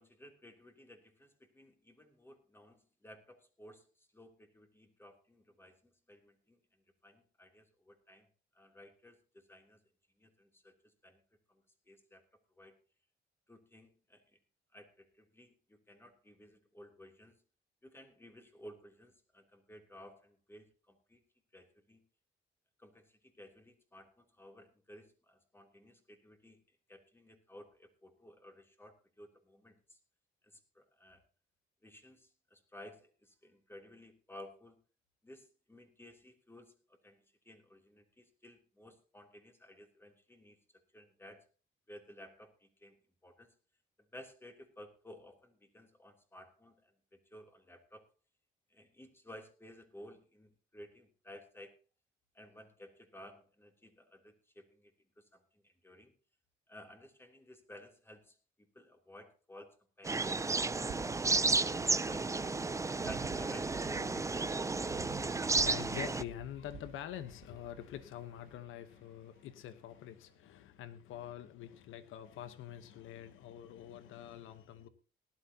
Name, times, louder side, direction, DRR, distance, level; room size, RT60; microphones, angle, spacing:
voice 1, 0.0-6.6 7.0-8.3 8.5-9.8 10.2-11.2 11.5-12.2 12.5-12.7 13.5-14.4 14.7-17.4 17.8-21.2 21.5-22.0 22.8-26.6 26.9-30.0 30.4-31.2 31.8-34.8 35.2-40.6 40.9-41.5 41.9-43.0 43.2-43.5 44.1-48.0 48.7-51.8 52.3-56.1 56.7-58.4 58.7-60.6 61.1-62.6 63.0-64.5, left 1 dB, 10° left, 4 dB, 3.0 m, -55 dB
sound 1, 60.0-66.2, right 3 dB, 15° right, 0.5 m, -32 dB
sound 2, 60.5-68.7, right 8 dB, 60° right, 1.1 m, -50 dB
voice 2, 61.4-63.1 64.1-74.9, left 11 dB, 85° left, 11 dB, 1.1 m, -47 dB
19.0 x 12.0 x 2.8 m, 0.35 s
cardioid pair, 90°, 20 cm